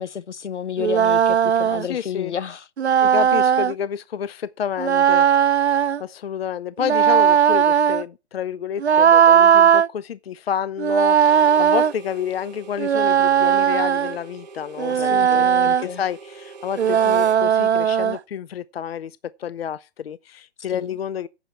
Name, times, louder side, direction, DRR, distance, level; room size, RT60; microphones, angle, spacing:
voice 1, 0.0-2.6 14.9-16.0 20.7-20.9, left 8 dB, 85° left, 1.0 m, -31 dB
sound 1, 0.8-1.9 2.8-3.7 4.8-6.0 6.8-8.0 8.8-9.9 10.8-11.9 12.8-14.2 14.8-15.8 16.8-18.2, right 8 dB, 70° right, 0.7 m, -17 dB
voice 2, 1.8-2.3 3.0-5.3 6.0-21.3, left 8 dB, 60° left, 0.6 m, -29 dB
Harmonica, 11.1-17.4, right 5 dB, 40° right, 1.3 m, -41 dB
10.0 x 6.9 x 5.8 m
hypercardioid pair, 150°, 34 cm